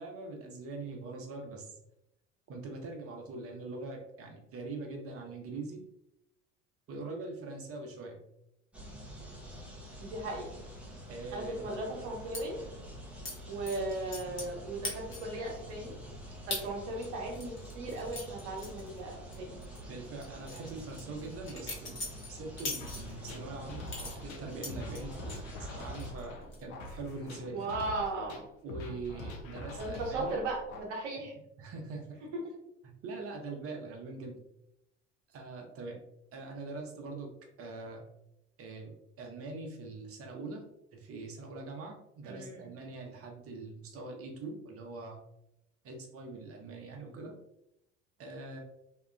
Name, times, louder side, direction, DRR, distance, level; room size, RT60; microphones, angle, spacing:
voice 1, 0.0-1.7 2.5-5.8 6.9-8.2 11.1-11.6 19.9-22.0 22.3-26.4 26.6-27.6 28.6-30.4 31.6-32.2 33.0-34.4 35.3-36.0 36.3-37.3 37.6-38.0 38.6-40.6 40.9-45.2 45.8-47.4 48.2-48.6, right 3 dB, 40° right, 2 dB, 0.8 m, -43 dB
sound 1, 8.7-26.1, equal, 5° right, 0.6 m, -47 dB
voice 2, 10.0-10.5 11.3-12.6 13.5-15.9 16.5-19.5 27.5-28.4 29.8-31.3 42.2-42.7, right 2 dB, 75° right, -1 dB, 0.9 m, -37 dB
sound 2, 12.3-12.4 13.2-13.4 13.7-14.6 14.8-15.4 15.8-15.9 16.5-16.6 17.0-19.4 19.6-19.8 20.2-23.4 23.9-25.4 25.8-26.2 26.5-26.9, left 2 dB, 35° left, 1.0 m, -41 dB
sound 3, 22.8-30.8, left 1 dB, 80° left, 0.6 m, -44 dB
2.8 x 2.3 x 2.2 m, 0.81 s
hypercardioid pair, 65°, 36 cm